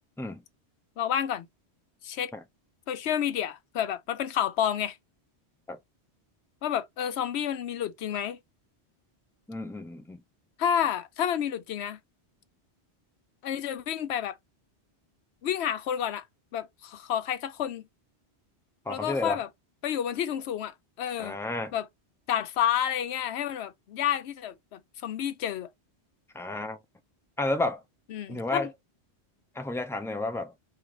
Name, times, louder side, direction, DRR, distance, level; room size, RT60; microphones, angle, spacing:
voice 1, 1.0-1.5 2.0-2.3 2.9-5.0 6.6-8.4 10.6-12.0 13.4-14.4 15.4-16.2 16.5-17.9 18.9-19.5 19.8-21.4 21.7-21.9 22.3-25.7 28.1-28.7, left 9 dB, 75° left, 0.9 m, -30 dB
voice 2, 9.5-10.2 18.9-19.4 21.2-21.7 26.3-26.8 27.4-27.8 28.3-28.7 29.5-30.5, left 2 dB, 5° left, 0.3 m, -31 dB
3.8 x 2.6 x 3.1 m
omnidirectional pair, 1.1 m